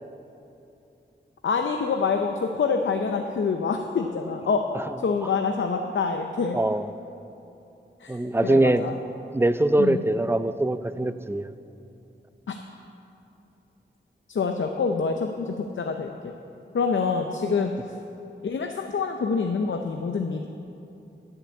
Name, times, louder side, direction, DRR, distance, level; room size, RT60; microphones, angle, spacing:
voice 1, 1.4-4.6 5.0-6.6 8.0-8.2 8.4-8.9 9.8-10.0 12.5-12.6 14.3-16.3 16.7-17.7 18.4-20.5, left 5 dB, 85° left, 4 dB, 0.6 m, -26 dB
voice 2, 6.5-6.9 8.1-8.8 9.3-11.5, right 1 dB, 10° right, 12 dB, 0.4 m, -23 dB
11.0 x 6.9 x 8.3 m, 2.8 s
wide cardioid pair, 75°, 19 cm